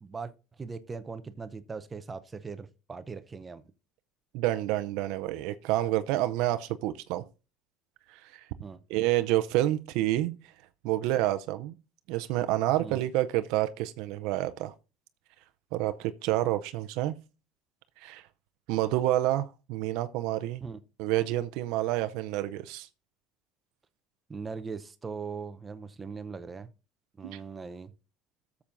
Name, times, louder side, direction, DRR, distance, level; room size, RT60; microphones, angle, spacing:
voice 1, 0.0-3.6 8.6-8.8 12.8-13.0 20.6-20.8 24.3-26.7 27.2-27.9, right 5 dB, 20° right, 0.6 m, -40 dB
voice 2, 4.3-7.2 8.1-8.4 8.9-10.3 10.8-11.7 12.1-14.7 15.7-17.1 18.0-18.3 18.7-20.6 21.0-22.9 27.2-27.4, right 15 dB, 70° right, 0.5 m, -28 dB
13.5 x 7.1 x 2.6 m
cardioid pair, 135°, 0 cm